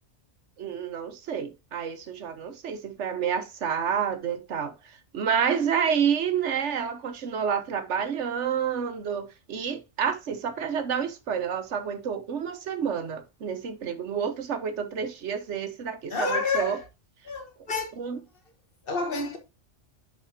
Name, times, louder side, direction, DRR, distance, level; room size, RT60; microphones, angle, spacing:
voice 1, 0.6-16.8 18.0-18.2, right 7 dB, 80° right, 1.3 m, -29 dB
voice 2, 16.1-16.8 17.2-17.9 18.8-19.4, left 3 dB, 50° left, 1.6 m, -29 dB
10.5 x 4.2 x 2.7 m
omnidirectional pair, 1.2 m